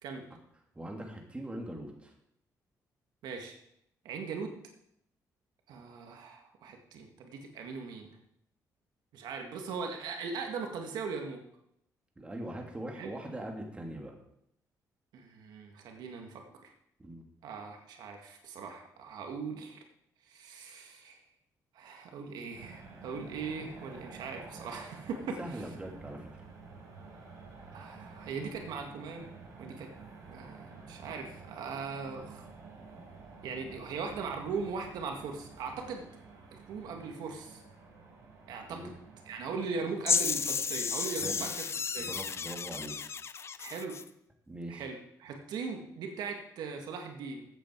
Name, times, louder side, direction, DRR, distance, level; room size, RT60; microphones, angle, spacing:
voice 1, 0.7-2.1 12.2-14.1 17.0-17.2 25.4-26.3 38.7-38.9 41.2-41.5 42.0-43.0 44.5-44.9, right 1 dB, 15° right, 1 dB, 2.8 m, -41 dB
voice 2, 3.2-3.6 4.0-4.5 5.7-8.2 9.1-11.4 13.0-13.1 15.1-16.7 17.4-19.8 20.3-21.2 21.7-25.6 27.7-29.3 29.6-29.9 30.3-32.5 33.4-36.1 36.5-37.6 38.5-38.9 39.3-41.5 41.9-42.1 43.6-44.0 44.7-47.5, right 5 dB, 85° right, 3 dB, 1.9 m, -39 dB
sound 1, 22.5-40.6, right 4 dB, 55° right, 4.9 m, -51 dB
sound 2, 40.1-44.1, left 6 dB, 40° left, 0.6 m, -32 dB
14.5 x 8.4 x 4.7 m, 0.75 s
cardioid pair, 105°, 7 cm